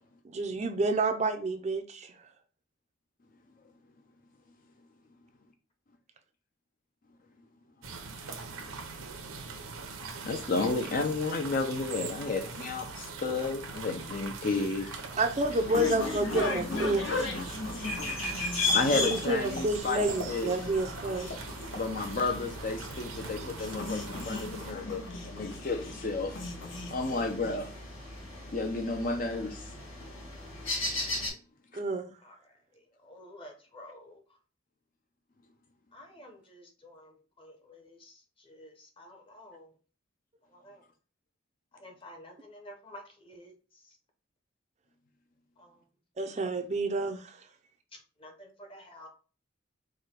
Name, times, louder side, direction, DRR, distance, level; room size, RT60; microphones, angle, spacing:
voice 1, 0.2-2.1 15.2-17.6 18.9-21.3 31.7-32.1 46.2-47.4, right 2 dB, 35° right, 0.4 m, -29 dB
sound 1, 7.8-24.7, right 4 dB, 85° right, 0.8 m, -42 dB
voice 2, 10.2-15.0 18.7-20.6 21.7-26.4 26.9-27.7 28.5-29.7, left 3 dB, 40° left, 0.4 m, -32 dB
sound 2, 14.4-28.0, left 2 dB, 65° left, 1.1 m, -38 dB
sound 3, 15.3-31.3, left 3 dB, 80° left, 2.5 m, -38 dB
voice 3, 32.2-34.4 35.9-39.8 40.5-40.9 41.7-44.0 45.6-45.9 47.9-49.1, left 1 dB, 25° left, 0.9 m, -51 dB
4.8 x 2.2 x 4.4 m
head